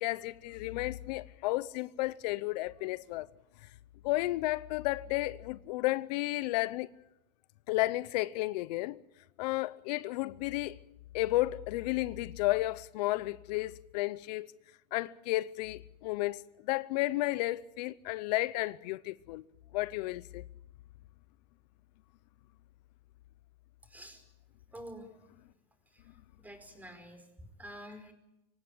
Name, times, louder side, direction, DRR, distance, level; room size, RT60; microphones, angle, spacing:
voice 1, 0.0-3.3 4.0-6.9 7.7-9.0 9.4-10.8 11.1-14.5 14.9-16.4 16.7-19.4 19.7-20.4, left 18 dB, 80° left, 0.7 m, -32 dB
voice 2, 23.9-24.2 24.7-25.1 25.9-26.0 26.4-27.2 27.6-28.1, equal, 10° right, 4.8 m, -48 dB
25.5 x 16.0 x 8.7 m
supercardioid pair, 115°, 21 cm